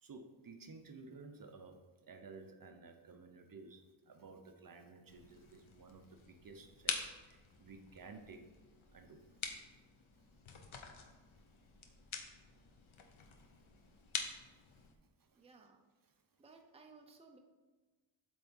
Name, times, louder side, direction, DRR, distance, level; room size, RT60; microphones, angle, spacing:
voice 1, 0.0-7.0 7.3-8.4 8.9-9.2 14.8-14.9 15.3-15.4 16.0-16.1, right 4 dB, 45° right, 5 dB, 0.7 m, -54 dB
sound 1, 5.1-14.9, left 5 dB, 80° left, 1.0 m, -47 dB
voice 2, 15.4-15.8 16.4-17.4, right 4 dB, 15° right, 2 dB, 0.6 m, -59 dB
8.1 x 3.5 x 5.4 m, 1.3 s
wide cardioid pair, 140°, 47 cm